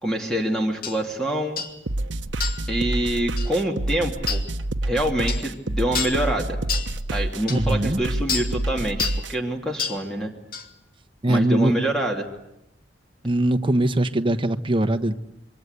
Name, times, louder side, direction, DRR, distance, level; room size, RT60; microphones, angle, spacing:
voice 1, 0.0-1.6 2.7-4.4 4.8-6.6 7.1-10.3 11.3-12.3, right 1 dB, 5° left, 1 dB, 2.7 m, -26 dB
Sword Hits, 0.8-1.0 1.6-1.8 2.4-2.7 3.4-3.5 4.3-4.5 5.3-5.5 5.9-6.2 6.7-6.9 7.5-7.6 8.3-8.5 9.0-9.2 9.8-10.0 10.5-10.7, left 6 dB, 50° left, 2.4 m, -28 dB
sound 1, 1.9-9.3, right 1 dB, 80° right, 1.0 m, -28 dB
voice 2, 7.5-8.0 11.2-11.7 13.2-15.1, right 1 dB, 30° right, 7 dB, 1.3 m, -21 dB
26.5 x 24.5 x 8.2 m, 0.84 s
head